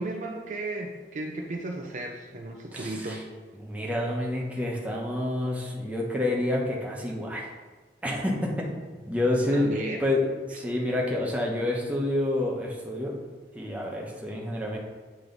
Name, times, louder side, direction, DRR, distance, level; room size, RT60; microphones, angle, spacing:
voice 1, 0.0-3.2 9.5-10.0, right 2 dB, 45° right, 2 dB, 0.5 m, -34 dB
voice 2, 2.7-3.2 3.6-7.5 8.0-8.7 9.1-9.7 10.0-13.1 13.5-14.8, left 1 dB, 10° right, -2 dB, 0.9 m, -28 dB
8.6 x 3.1 x 3.9 m, 1.4 s
head